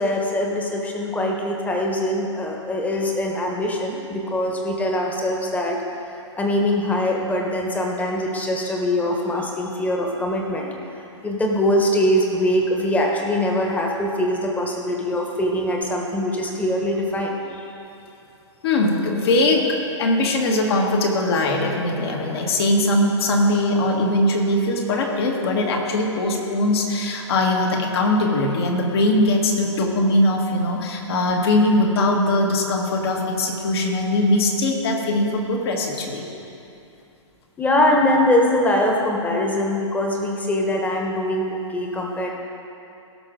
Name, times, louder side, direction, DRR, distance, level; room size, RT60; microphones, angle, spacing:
voice 1, 0.0-5.8 6.1-10.7 11.2-17.7 37.6-42.3, left 1 dB, 10° left, 1 dB, 1.3 m, -22 dB
voice 2, 18.6-36.3, left 1 dB, 55° left, 0 dB, 1.8 m, -21 dB
17.0 x 6.0 x 3.9 m, 2.7 s
hypercardioid pair, 125°, 16 cm